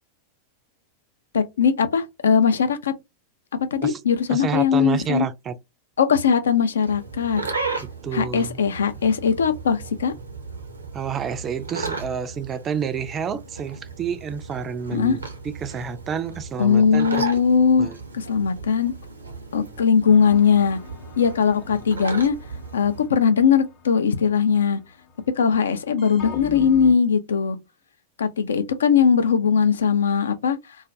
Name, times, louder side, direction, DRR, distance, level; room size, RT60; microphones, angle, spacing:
voice 1, 1.3-2.9 3.7-5.3 6.0-7.4 8.1-10.1 14.9-15.2 16.6-18.9 19.5-20.8 21.2-22.4 22.7-24.8 25.4-27.6 28.2-30.6, left 6 dB, 65° left, 0.4 m, -20 dB
voice 2, 4.3-5.6 7.8-8.6 10.9-15.2 15.6-17.1 17.8-18.0, right 7 dB, 25° right, 0.3 m, -29 dB
sound 1, 6.8-23.1, right 4 dB, 75° right, 0.6 m, -36 dB
sound 2, 20.1-25.3 26.0-26.9, left 5 dB, 35° left, 0.8 m, -41 dB
2.3 x 2.1 x 2.5 m
figure-of-eight pair, 90°, 0 cm